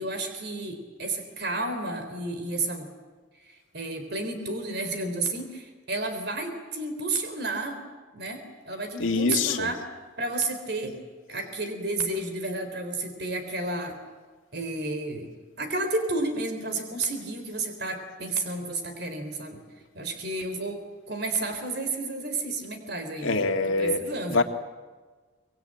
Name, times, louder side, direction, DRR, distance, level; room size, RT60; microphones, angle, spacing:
voice 1, 0.0-2.9 3.4-7.8 8.1-9.8 10.2-11.0 11.3-14.0 14.5-15.3 15.6-19.6 19.9-23.4 23.8-24.4, right 2 dB, 55° right, 7 dB, 3.6 m, -31 dB
voice 2, 9.0-9.7 23.2-24.4, left 3 dB, 90° left, 4 dB, 1.9 m, -25 dB
24.5 x 22.0 x 8.8 m, 1.4 s
head